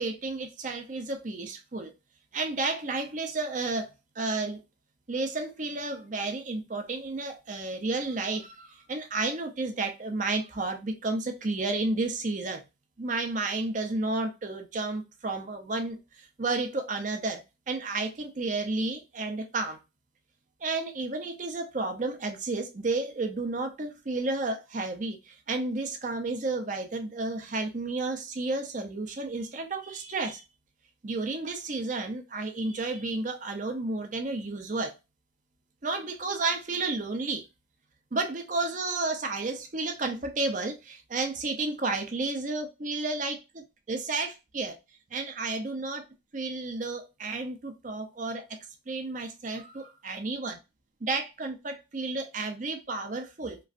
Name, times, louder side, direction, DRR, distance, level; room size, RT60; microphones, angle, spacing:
voice 1, 0.0-1.9 2.3-4.6 5.1-12.6 13.0-19.8 20.6-30.4 31.0-35.0 35.8-37.4 38.1-44.8 45.1-46.0 46.3-48.5 48.9-50.6 51.0-53.6, right 3 dB, 40° right, 0.5 m, -32 dB
3.0 x 2.5 x 2.5 m
head